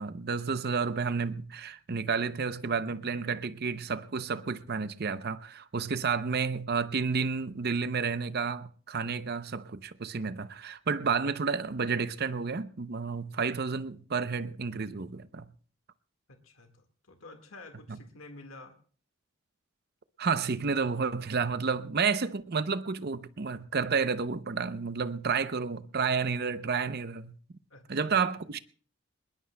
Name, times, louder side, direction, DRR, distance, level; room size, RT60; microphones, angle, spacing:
voice 1, 0.0-15.5 17.9-18.0 20.2-27.4 27.9-28.6, right 5 dB, 50° right, 0.6 m, -31 dB
voice 2, 16.3-18.8 27.7-28.1, left 2 dB, 85° left, 1.7 m, -50 dB
21.5 x 21.0 x 2.2 m
head